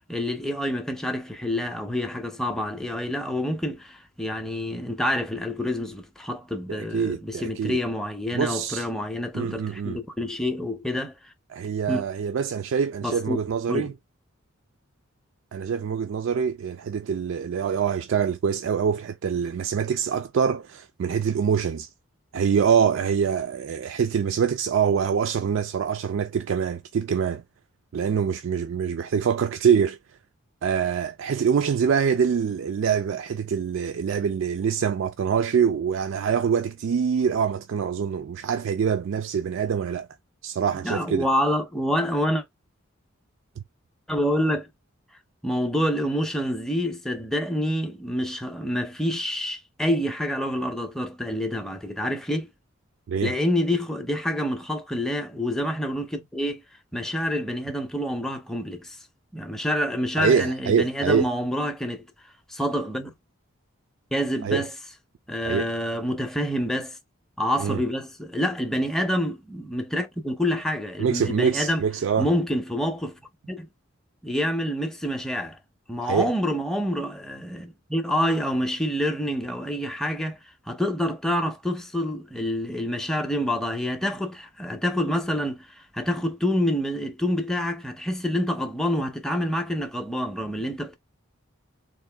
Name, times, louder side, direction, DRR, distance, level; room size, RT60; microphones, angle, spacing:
voice 1, 0.1-11.1 11.9-12.0 13.0-13.4 13.7-13.9 40.7-42.4 44.1-44.7 45.4-52.5 53.2-56.6 56.9-59.0 59.3-62.1 62.5-63.1 64.1-64.7 65.3-67.0 67.4-71.8 72.2-73.2 73.5-73.7 74.2-75.6 75.9-80.4 80.7-91.0, equal, ahead, 0.5 m, -27 dB
voice 2, 6.7-7.8 8.3-8.9 9.3-10.0 11.5-13.9 15.5-21.9 22.3-27.4 27.9-30.0 30.6-40.1 40.4-41.3 53.1-53.3 60.2-61.3 64.4-64.7 65.4-65.7 67.6-67.8 71.0-72.3 76.0-76.3, right 7 dB, 65° right, 0.3 m, -25 dB
3.7 x 2.5 x 3.3 m
head